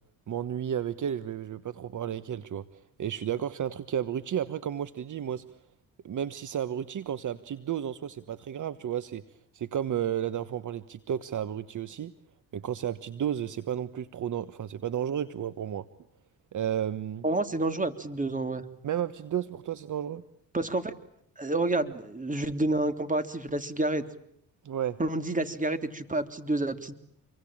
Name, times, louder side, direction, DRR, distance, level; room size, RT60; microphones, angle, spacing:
voice 1, 0.3-2.6 3.0-5.4 6.0-9.2 9.5-12.1 12.5-15.8 16.5-17.2 18.8-20.2 24.6-25.0, right 9 dB, 55° right, 14 dB, 1.4 m, -32 dB
voice 2, 17.2-18.6 20.5-20.9 21.4-24.0 25.0-26.9, right 2 dB, 20° right, 10 dB, 3.4 m, -29 dB
28.0 x 23.5 x 8.9 m, 0.72 s
supercardioid pair, 70°, 36 cm